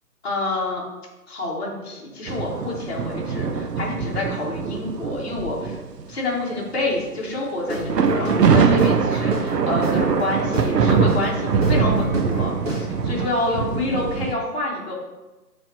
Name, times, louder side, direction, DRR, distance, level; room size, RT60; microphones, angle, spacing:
voice 1, 0.2-0.8 1.3-5.8 6.1-14.9, left 2 dB, 40° left, -4 dB, 1.1 m, -27 dB
sound 1, 2.3-6.1 6.8-7.0 7.7-14.3, right 6 dB, 90° right, 0.6 m, -22 dB
Guitar / Drum, 7.6-13.2, equal, 45° right, 1.3 m, -31 dB
5.9 x 3.1 x 2.8 m, 1.1 s
hypercardioid pair, 165°, 47 cm